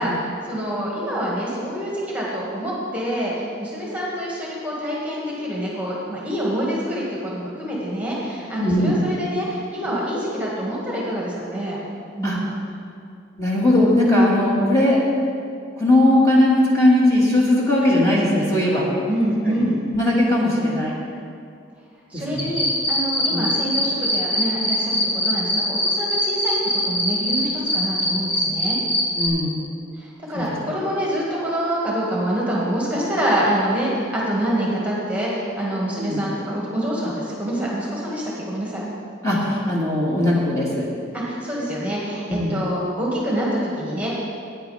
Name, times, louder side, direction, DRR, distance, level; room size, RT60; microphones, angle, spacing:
voice 1, 0.0-11.8 12.2-12.5 19.1-19.8 22.1-28.8 30.0-38.8 41.1-44.1, right 1 dB, 10° right, -6 dB, 1.8 m, -26 dB
voice 2, 8.6-9.0 12.2-12.4 13.4-15.0 15.8-18.9 19.5-20.9 22.1-22.5 23.3-23.5 29.2-29.6 30.3-30.5 36.0-36.2 39.2-40.9 42.3-42.5, left 1 dB, 15° left, -6 dB, 1.8 m, -19 dB
sound 1, 22.4-27.4 27.7-29.3, equal, 45° left, 2.5 m, -21 dB
16.0 x 9.5 x 3.4 m, 2.4 s
head